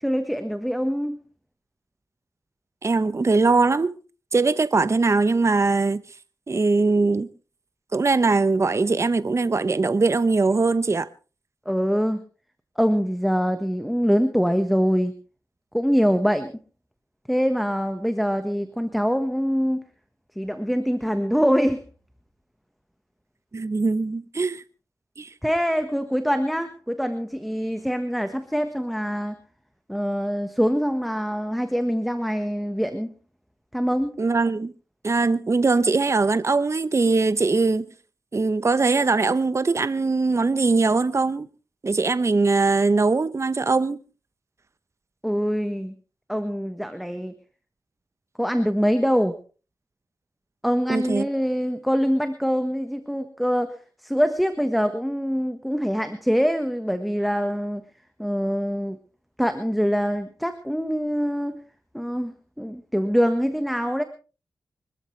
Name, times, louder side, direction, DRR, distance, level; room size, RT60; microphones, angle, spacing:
voice 1, 0.0-1.2 11.6-12.2 12.8-15.1 15.7-16.5 17.3-19.8 20.4-21.8 25.4-29.4 29.9-33.1 33.7-34.1 45.2-45.9 46.3-47.3 48.4-49.4 50.6-57.8 58.2-59.0 59.4-61.6 61.9-64.0, equal, ahead, 1.4 m, -24 dB
voice 2, 2.8-4.0 4.3-6.0 6.5-7.3 7.9-11.1 23.5-24.6 25.2-25.3 34.2-34.7 35.0-37.8 38.3-41.5 41.8-44.0 50.9-51.3, right 3 dB, 40° right, 0.8 m, -21 dB
24.5 x 13.5 x 3.3 m
wide cardioid pair, 75°, 8 cm